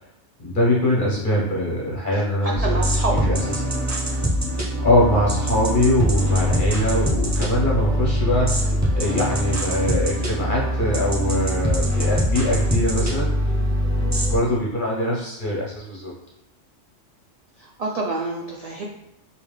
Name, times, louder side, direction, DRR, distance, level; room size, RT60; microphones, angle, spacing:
voice 1, 0.4-2.6 3.2-3.4 4.8-13.3 13.9-16.1, left 1 dB, 45° left, -5 dB, 1.0 m, -22 dB
voice 2, 2.1-3.3 17.6-18.8, right 3 dB, 90° right, -2 dB, 0.3 m, -28 dB
sound 1, 2.5-14.4, equal, 20° right, 0.4 m, -23 dB
3.5 x 2.6 x 3.2 m, 0.91 s
omnidirectional pair, 1.2 m